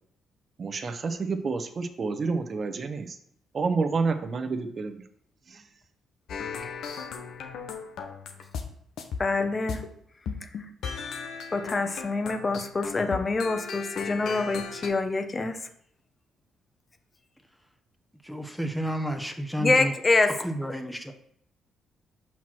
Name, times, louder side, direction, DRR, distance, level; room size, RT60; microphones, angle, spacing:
voice 1, 0.6-3.2 3.5-5.0 5.5-5.7, right 4 dB, 45° right, 0.9 m, -29 dB
sound 1, 6.3-8.7 9.0-9.9 10.3-14.9, left 6 dB, 75° left, 1.0 m, -36 dB
voice 2, 9.2-9.8 10.4-10.5 11.5-15.6 19.6-20.5, left 3 dB, 30° left, 0.9 m, -26 dB
voice 3, 18.3-19.7 20.6-21.1, equal, ahead, 1.0 m, -31 dB
5.9 x 4.5 x 6.0 m
cardioid pair, 90°, 0 cm